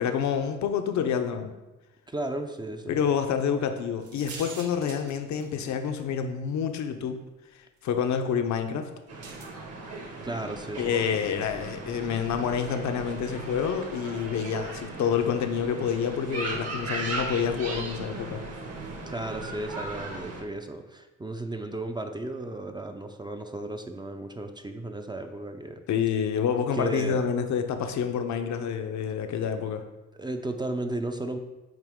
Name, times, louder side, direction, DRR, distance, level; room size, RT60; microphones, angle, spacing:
voice 1, 0.0-1.5 2.9-7.2 7.8-8.9 10.8-18.4 25.9-29.9, left 7 dB, 65° left, 7 dB, 0.7 m, -28 dB
voice 2, 2.1-3.0 10.2-11.1 19.1-25.8 26.7-27.2 30.1-31.4, right 2 dB, 15° right, 6 dB, 0.5 m, -34 dB
sound 1, 4.0-5.9 6.7-6.8 9.2-9.5, right 4 dB, 75° right, 1.1 m, -43 dB
sound 2, 9.1-20.4, right 2 dB, 55° right, 1.4 m, -37 dB
8.9 x 3.0 x 3.6 m, 1.1 s
cardioid pair, 90°, 30 cm